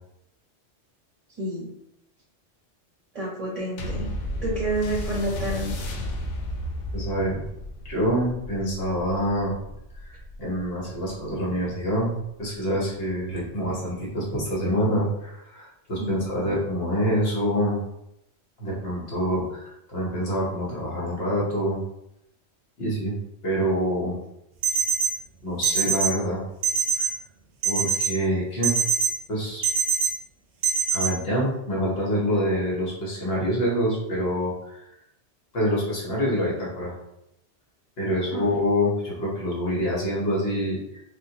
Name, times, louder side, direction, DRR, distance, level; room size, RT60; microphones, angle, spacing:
voice 1, 1.4-1.7 3.1-4.1 4.4-5.7 16.0-16.2 38.3-38.4, right 1 dB, 35° right, -6 dB, 0.7 m, -29 dB
sound 1, 3.8-12.6 13.3-13.4, left 1 dB, 90° left, 0.9 m, -34 dB
voice 2, 6.9-7.4 7.9-9.6 10.0-17.8 18.6-21.8 22.8-23.2 23.4-24.1 25.4-26.4 27.6-28.8 29.3-29.7 30.9-34.8 35.5-36.9 38.0-41.0, equal, 60° left, -5 dB, 1.2 m, -26 dB
sound 2, 24.6-25.1 25.6-26.1 26.6-27.1 27.6-28.1 28.6-29.1 29.6-30.1 30.6-31.1, right 7 dB, 80° right, 0.9 m, -22 dB
3.7 x 2.2 x 2.8 m, 0.81 s
omnidirectional pair, 1.2 m